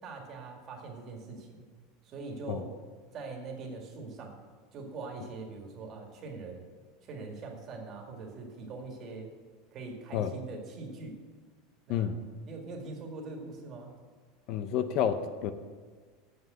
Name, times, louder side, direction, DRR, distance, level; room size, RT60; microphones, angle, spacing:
voice 1, 0.0-1.6 2.0-2.7 3.1-4.4 4.7-6.6 7.0-9.3 9.7-11.2 11.9-12.1 12.5-13.9, right 3 dB, 35° right, 1 dB, 2.0 m, -42 dB
voice 2, 14.5-15.5, left 9 dB, 45° left, 10 dB, 0.6 m, -29 dB
7.9 x 7.7 x 7.8 m, 1.5 s
supercardioid pair, 155°, 0 cm